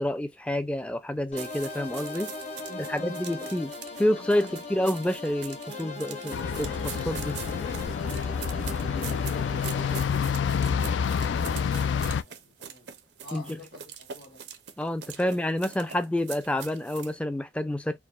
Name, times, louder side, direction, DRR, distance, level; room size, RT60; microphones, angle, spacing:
voice 1, 0.0-2.3 2.9-3.7 4.0-7.4 13.3-13.4 14.8-18.0, left 1 dB, 5° left, 0.3 m, -28 dB
sound 1, 1.3-10.0, left 2 dB, 40° left, 1.0 m, -39 dB
sound 2, 1.4-17.1, right 8 dB, 70° right, 0.5 m, -43 dB
voice 2, 2.7-3.5 3.9-4.6 8.2-12.9 13.2-14.4 15.0-16.3, left 1 dB, 60° left, 1.7 m, -48 dB
sound 3, 6.3-12.2, left 7 dB, 90° left, 0.3 m, -28 dB
4.5 x 2.1 x 2.2 m
head